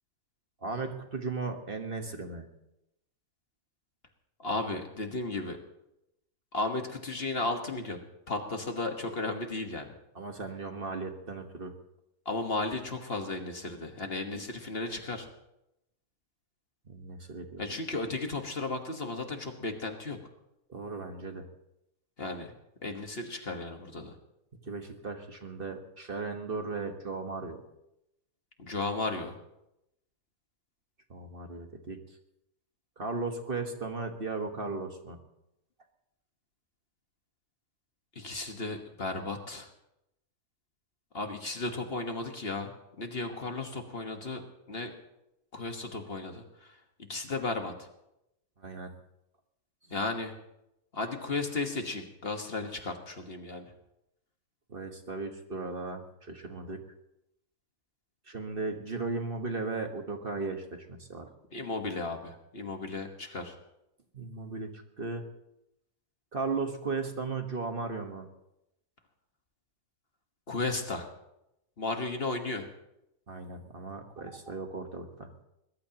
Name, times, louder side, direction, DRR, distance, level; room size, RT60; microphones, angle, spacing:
voice 1, 0.6-2.5 10.1-11.7 14.3-14.4 16.9-17.7 20.7-21.5 24.7-27.6 31.1-32.2 33.0-35.2 48.6-48.9 49.9-50.0 54.7-56.8 58.3-61.3 64.1-65.2 66.3-68.3 73.3-75.3, right 3 dB, 40° right, 4 dB, 1.6 m, -36 dB
voice 2, 4.4-5.6 6.5-8.0 8.3-9.9 12.3-15.3 17.6-20.2 22.2-22.5 22.8-24.2 28.6-29.4 38.2-39.7 41.1-44.4 44.7-44.9 45.5-46.8 47.1-47.9 49.9-50.3 50.9-53.7 61.5-63.6 70.5-71.1 71.8-72.7, left 3 dB, 45° left, 4 dB, 1.7 m, -34 dB
22.0 x 21.0 x 3.0 m, 0.86 s
omnidirectional pair, 1.5 m